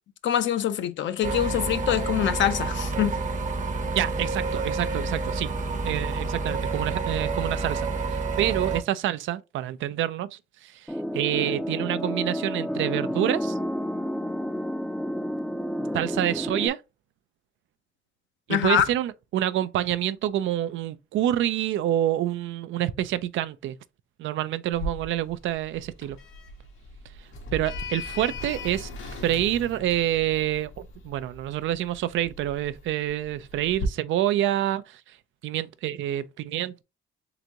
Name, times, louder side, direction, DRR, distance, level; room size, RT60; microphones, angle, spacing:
voice 1, 0.2-3.2 18.5-18.9, left 10 dB, 70° left, 0.6 m, -24 dB
sound 1, 1.2-8.8, right 3 dB, 40° right, 0.8 m, -29 dB
voice 2, 3.9-5.5 5.8-10.8 11.1-13.6 15.9-16.8 18.5-23.8 24.2-26.2 27.5-28.9 29.2-35.0 35.4-36.8, right 12 dB, 80° right, 0.4 m, -27 dB
sound 2, 10.9-16.7, equal, 5° left, 0.4 m, -30 dB
Sliding door, 24.7-33.9, left 2 dB, 85° left, 1.4 m, -39 dB
3.9 x 3.5 x 2.9 m
cardioid pair, 90°, 20 cm